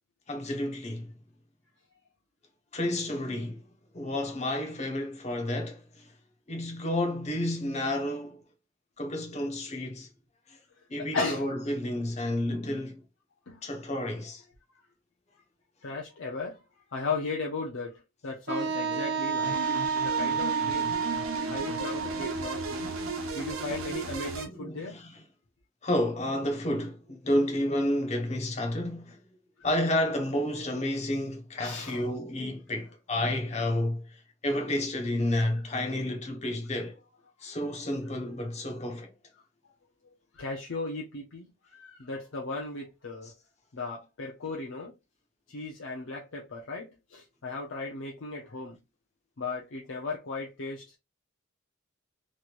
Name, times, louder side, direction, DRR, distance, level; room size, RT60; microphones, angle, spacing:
voice 1, 0.3-1.1 2.7-3.6 3.9-6.1 6.5-8.4 9.0-10.1 10.5-10.6 10.9-13.0 13.6-14.4 18.9-19.0 20.9-21.0 21.3-21.4 24.5-25.2 25.8-29.2 29.6-37.0 37.4-39.1, left 1 dB, 30° left, 0.7 m, -31 dB
voice 2, 11.0-11.5 13.5-13.6 15.8-16.6 16.9-17.9 18.2-19.6 20.0-21.0 21.5-22.9 23.3-25.0 31.6-32.2 40.3-43.3 43.7-44.9 45.5-48.8 49.4-51.0, left 3 dB, 70° left, 0.6 m, -36 dB
Wind instrument woodwind instrument, 18.5-24.2, right 5 dB, 50° right, 0.5 m, -31 dB
sound 1, 19.4-24.5, right 4 dB, 90° right, 0.8 m, -37 dB
3.1 x 3.0 x 2.5 m
head